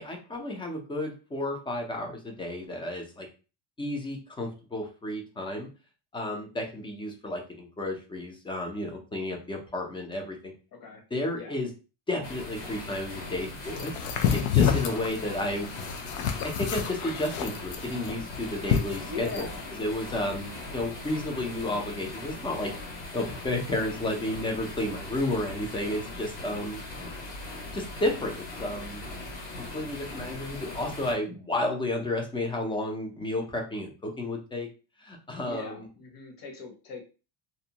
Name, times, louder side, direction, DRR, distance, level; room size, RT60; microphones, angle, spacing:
voice 1, 0.0-3.3 3.8-5.7 6.1-10.5 11.1-11.7 12.1-13.9 14.3-15.7 16.4-19.5 19.8-26.8 27.7-29.0 29.6-34.7 35.0-35.8, left 1 dB, 10° left, 2 dB, 0.3 m, -32 dB
voice 2, 10.7-11.0 11.3-11.6 14.7-15.0 19.1-19.6 20.2-20.6 35.4-37.0, left 4 dB, 50° left, 1 dB, 0.9 m, -41 dB
sound 1, 12.2-31.1, left 2 dB, 65° left, 1.5 m, -40 dB
sound 2, 13.7-19.5, left 8 dB, 90° left, 0.6 m, -28 dB
2.6 x 2.1 x 2.7 m, 0.33 s
cardioid pair, 145°, 45 cm